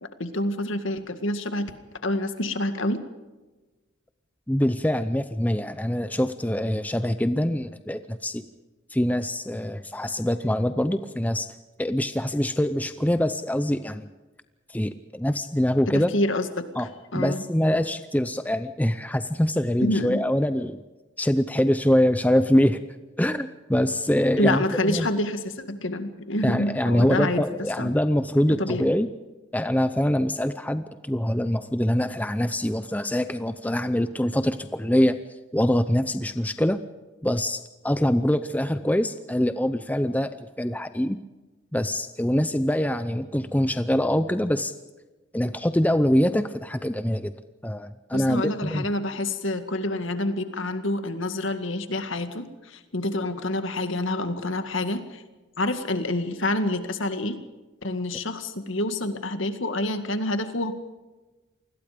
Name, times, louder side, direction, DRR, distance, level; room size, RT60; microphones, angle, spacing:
voice 1, 0.0-1.7 2.0-3.0 15.9-17.4 19.8-20.2 24.4-27.4 27.8-27.9 28.6-28.9 48.1-55.2 55.6-57.4 57.8-60.7, left 1 dB, 65° left, 9 dB, 2.0 m, -27 dB
voice 2, 4.5-8.4 8.9-11.5 11.8-14.1 14.7-16.1 16.8-16.9 17.1-20.8 21.2-22.8 23.2-25.1 26.4-29.1 29.5-35.2 35.5-36.8 37.2-41.2 41.7-44.7 45.3-47.3 47.6-48.9, equal, 5° left, 11 dB, 0.6 m, -24 dB
28.0 x 21.0 x 5.2 m, 1.2 s
head